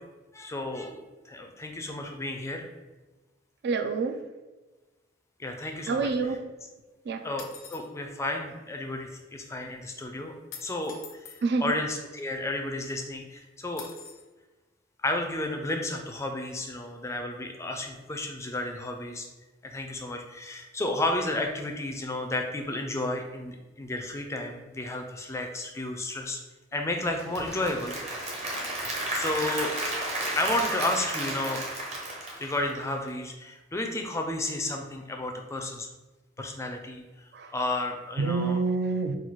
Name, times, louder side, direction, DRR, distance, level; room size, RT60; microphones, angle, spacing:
voice 1, 0.3-2.7 5.4-6.1 7.2-10.3 10.6-13.9 15.0-19.3 19.6-26.4 26.7-27.9 29.1-29.7 30.4-31.6 32.4-35.9 36.4-37.0 37.5-38.6, left 2 dB, 15° left, 3 dB, 0.4 m, -32 dB
voice 2, 3.6-4.2 5.9-6.4 7.1-7.3 11.4-11.7 37.3-37.5 38.2-39.2, right 4 dB, 55° right, 7 dB, 0.4 m, -27 dB
sound 1, 7.4-7.9 10.5-11.4 13.8-14.3, left 7 dB, 85° left, 0.6 m, -45 dB
Applause / Crowd, 27.0-33.1, right 1 dB, 35° right, 0.9 m, -33 dB
3.9 x 2.3 x 4.5 m, 1.2 s
head